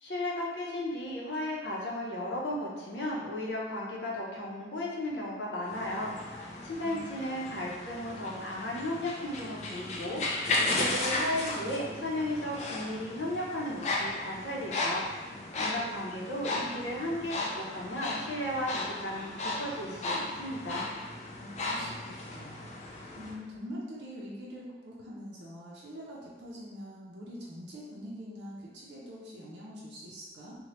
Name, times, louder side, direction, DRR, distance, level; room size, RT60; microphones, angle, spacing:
voice 1, 0.0-10.2 10.6-20.9, left 1 dB, 85° left, -4 dB, 0.6 m, -35 dB
sound 1, 5.6-23.3, left 2 dB, 40° left, 0.3 m, -35 dB
voice 2, 6.7-7.1 7.5-7.6 16.0-17.2 21.3-22.7 23.2-30.6, equal, 80° right, -6 dB, 0.5 m, -44 dB
3.1 x 2.1 x 2.9 m, 1.3 s
head